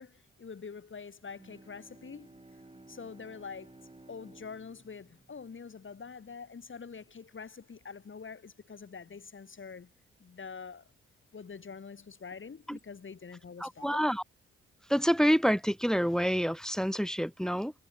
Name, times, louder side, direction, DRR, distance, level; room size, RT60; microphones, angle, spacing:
voice 1, 0.0-2.3 2.9-3.8 4.1-9.9 10.2-10.9 11.3-14.1, left 5 dB, 45° left, 3.0 m, -45 dB
Bowed string instrument, 1.2-6.5, right 2 dB, 20° right, 7.9 m, -56 dB
voice 2, 13.6-14.2 14.9-17.7, equal, ahead, 1.3 m, -27 dB
hypercardioid pair, 45°, 29 cm